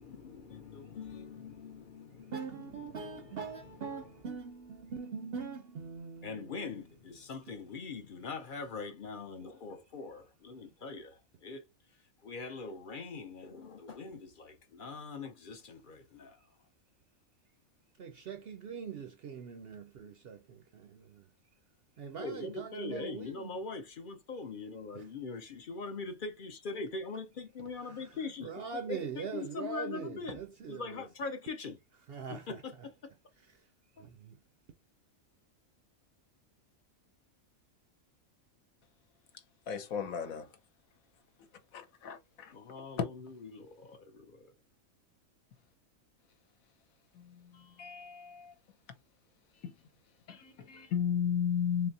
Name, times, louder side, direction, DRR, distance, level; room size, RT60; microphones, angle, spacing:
voice 1, 0.0-2.3 2.8-3.4 6.2-11.6 12.2-16.4 22.2-30.4 30.7-31.8 32.3-33.1 42.5-44.5, left 4 dB, 50° left, 0.6 m, -42 dB
voice 2, 2.3-6.7 18.0-21.3 22.0-23.6 24.9-25.1 27.8-31.0 32.1-32.9 33.5-33.6 34.0-34.4, right 6 dB, 60° right, 0.6 m, -42 dB
voice 3, 39.7-40.5 41.7-42.5 43.0-43.1 47.1-48.5 49.6-49.7 50.3-51.9, left 8 dB, 80° left, 1.3 m, -34 dB
3.9 x 3.0 x 2.7 m
omnidirectional pair, 1.4 m